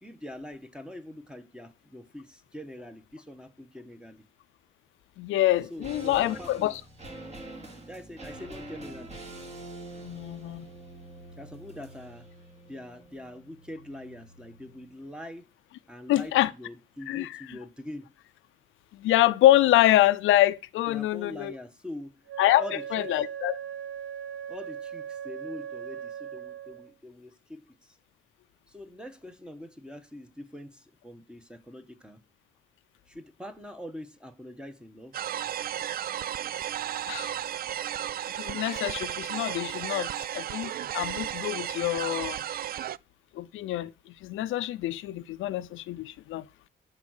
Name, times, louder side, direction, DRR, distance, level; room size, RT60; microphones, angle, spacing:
voice 1, 0.0-4.2 5.7-6.8 7.9-9.2 11.4-12.3 12.7-15.5 15.9-18.1 20.9-22.1 22.5-23.1 24.5-28.0 28.7-32.2 33.1-35.2, left 1 dB, 5° right, 1.3 m, -43 dB
voice 2, 5.2-6.8 10.0-10.7 16.1-16.5 17.1-17.6 18.9-21.5 22.4-22.6 22.9-23.6 37.1-37.3 38.4-42.4 43.3-46.7, left 14 dB, 80° left, 0.6 m, -26 dB
sound 1, 5.5-14.9 15.2-15.3, right 2 dB, 35° right, 3.4 m, -45 dB
Wind instrument woodwind instrument, 22.3-26.9, right 9 dB, 75° right, 1.1 m, -39 dB
sound 2, 35.1-43.0, right 11 dB, 50° right, 0.4 m, -34 dB
10.5 x 4.9 x 6.5 m
cardioid pair, 90°, 20 cm